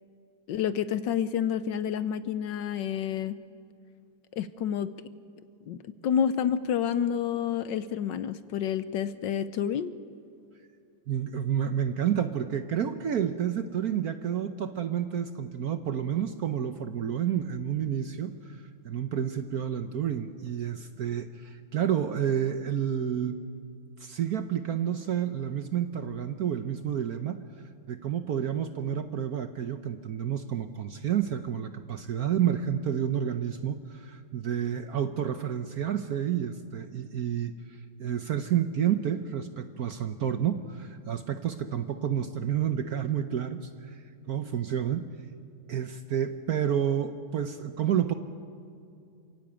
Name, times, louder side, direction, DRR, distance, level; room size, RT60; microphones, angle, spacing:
voice 1, 0.5-3.4 4.3-4.9 5.7-5.8 6.0-9.9, left 8 dB, 70° left, 13 dB, 1.3 m, -29 dB
voice 2, 11.1-23.4 24.0-27.4 27.9-45.1 45.7-48.1, right 9 dB, 60° right, 9 dB, 1.0 m, -30 dB
28.0 x 16.5 x 8.9 m, 2.5 s
omnidirectional pair, 2.3 m